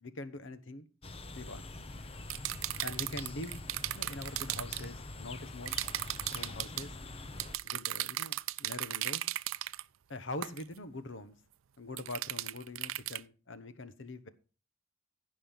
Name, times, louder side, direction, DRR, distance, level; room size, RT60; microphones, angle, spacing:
voice 1, 0.0-0.9 1.3-1.7 2.8-3.6 3.9-5.8 6.3-7.0 7.6-9.3 10.1-11.4 11.8-14.3, left 2 dB, 65° left, 1.1 m, -43 dB
sound 1, 1.0-7.6, left 2 dB, 30° left, 0.8 m, -45 dB
sound 2, 2.3-4.8 5.7-6.9 7.4-9.8 10.4-10.6 12.0-13.2, right 15 dB, 85° right, 0.4 m, -36 dB
15.5 x 5.5 x 5.7 m
head